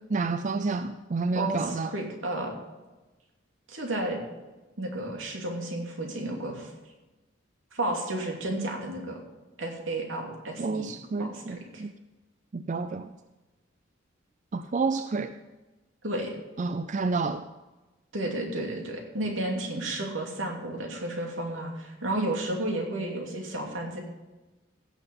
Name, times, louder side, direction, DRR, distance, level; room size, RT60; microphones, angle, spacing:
voice 1, 0.1-1.9 10.6-11.9 12.5-13.1 14.5-15.3 16.6-17.4, right 4 dB, 40° right, 10 dB, 0.4 m, -29 dB
voice 2, 1.3-2.5 3.7-4.2 4.8-6.7 7.7-9.2 9.6-10.9 11.2-11.8 16.0-16.3 18.1-24.0, right 1 dB, 85° right, 1 dB, 2.8 m, -32 dB
16.0 x 7.0 x 5.4 m, 1.1 s
head